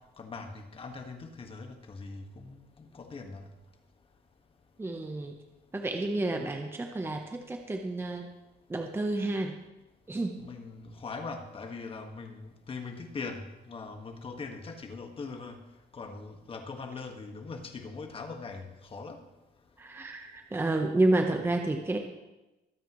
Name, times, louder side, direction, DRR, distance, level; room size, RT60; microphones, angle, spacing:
voice 1, 0.2-3.5 10.4-15.6 15.9-19.2, left 4 dB, 35° left, 4 dB, 1.7 m, -41 dB
voice 2, 4.8-5.4 5.7-8.3 8.7-9.6 10.1-10.4 19.8-22.0, right 2 dB, 15° right, 4 dB, 1.0 m, -30 dB
23.0 x 9.0 x 3.1 m, 1.0 s
cardioid pair, 110°, 17 cm